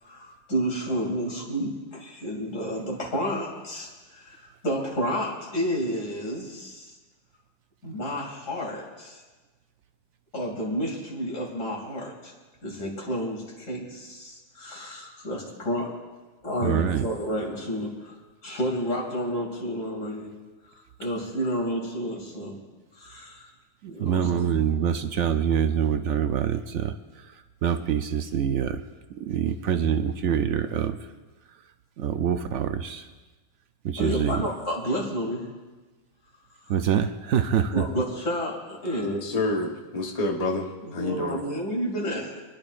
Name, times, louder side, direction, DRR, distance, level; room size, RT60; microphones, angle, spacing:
voice 1, 0.0-7.0 7.8-9.2 10.3-12.3 12.6-15.9 16.4-18.2 18.4-20.3 20.7-22.6 22.9-23.5 23.9-24.3 34.0-35.5 37.7-39.2 40.8-42.4, equal, 70° left, -2 dB, 3.1 m, -30 dB
voice 2, 16.6-17.1 23.8-26.9 27.2-27.3 27.6-28.8 29.1-31.0 32.0-33.1 33.8-34.5 36.7-37.8, right 8 dB, 70° right, 9 dB, 0.8 m, -25 dB
voice 3, 39.0-41.4, left 2 dB, 30° left, 1 dB, 1.1 m, -28 dB
28.5 x 10.5 x 2.5 m, 1.2 s
omnidirectional pair, 1.4 m